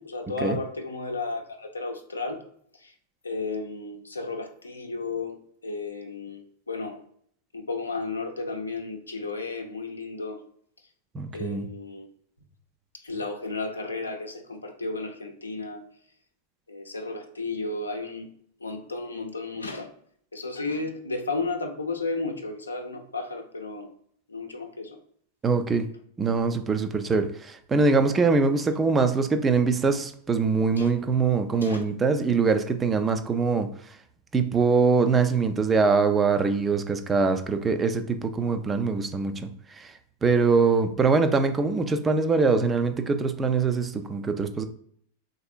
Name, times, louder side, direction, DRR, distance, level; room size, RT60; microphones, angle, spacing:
voice 1, 0.0-2.4 2.8-2.9 3.2-5.4 5.6-7.0 7.5-10.4 11.3-12.1 13.0-15.8 16.7-18.3 18.6-19.9 20.3-23.9 24.3-25.0 30.8-30.9 31.6-31.8, left 3 dB, 80° left, 0.5 m, -33 dB
voice 2, 11.1-11.7 25.4-25.9 26.2-33.7 34.3-39.5 39.8-39.9 40.2-44.6, right 4 dB, 20° right, 0.3 m, -23 dB
3.4 x 2.6 x 2.4 m
figure-of-eight pair, 90°, 0 cm